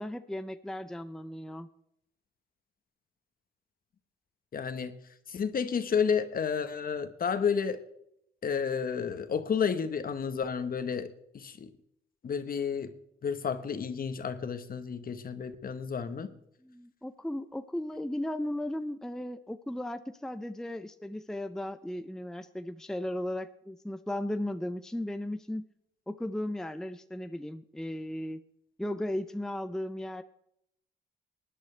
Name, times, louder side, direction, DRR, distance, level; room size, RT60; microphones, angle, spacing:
voice 1, 0.0-1.7 16.6-25.7 26.1-28.4 28.8-30.2, left 1 dB, 5° left, 9 dB, 0.6 m, -36 dB
voice 2, 4.5-4.9 5.3-7.8 8.4-11.7 12.2-12.9 13.2-16.3, left 6 dB, 45° left, 10 dB, 1.3 m, -31 dB
19.5 x 11.0 x 3.4 m, 0.75 s
cardioid pair, 90°, 20 cm